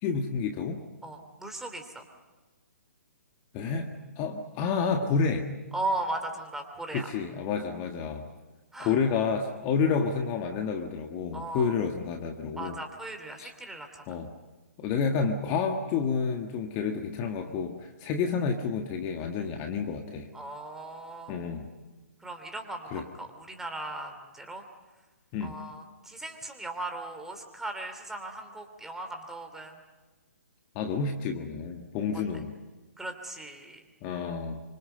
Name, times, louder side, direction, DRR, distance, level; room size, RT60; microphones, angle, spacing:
voice 1, 0.0-0.8 3.5-3.9 4.2-5.5 6.9-8.2 8.8-12.8 13.4-13.5 14.1-14.3 14.8-20.3 21.3-21.7 22.9-23.0 25.3-25.5 30.7-32.5 34.0-34.6, left 5 dB, 30° left, 4 dB, 1.6 m, -29 dB
voice 2, 1.0-2.0 5.7-7.1 8.7-9.0 11.3-11.7 12.6-14.2 20.3-21.4 22.2-24.6 25.4-29.8 33.0-33.8, right 2 dB, 5° right, 4 dB, 2.9 m, -37 dB
26.0 x 25.0 x 6.7 m, 1.2 s
figure-of-eight pair, 130°, 9 cm